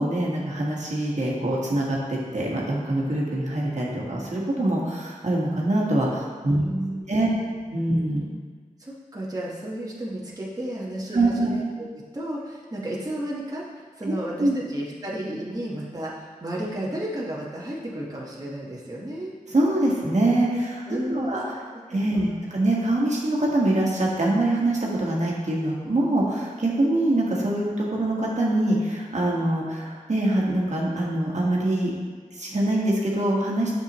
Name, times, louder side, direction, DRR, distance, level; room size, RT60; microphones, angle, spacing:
voice 1, 0.0-6.6 7.1-7.3 7.7-8.3 11.1-11.5 14.4-14.6 19.5-20.8 21.1-21.4 21.9-31.9 32.3-33.7, right 1 dB, 55° right, -4 dB, 1.5 m, -24 dB
voice 2, 6.5-7.6 8.8-11.6 11.9-19.3 20.9-21.6 22.1-22.4, right 1 dB, 25° right, -5 dB, 1.3 m, -33 dB
8.0 x 6.8 x 3.0 m, 1.5 s
cardioid pair, 50°, 14 cm